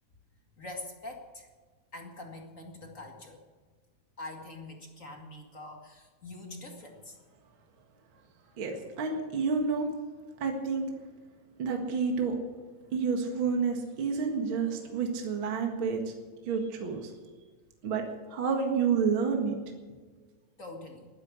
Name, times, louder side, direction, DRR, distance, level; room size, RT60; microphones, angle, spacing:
voice 1, 0.6-1.5 1.9-3.4 4.2-7.2 20.6-21.1, left 2 dB, 30° left, 2 dB, 1.9 m, -44 dB
voice 2, 8.6-9.9 10.4-10.9 11.6-12.4 12.9-16.1 16.5-17.1 17.8-19.6, right 5 dB, 45° right, 3 dB, 2.4 m, -29 dB
21.0 x 10.5 x 6.5 m, 1.5 s
omnidirectional pair, 3.4 m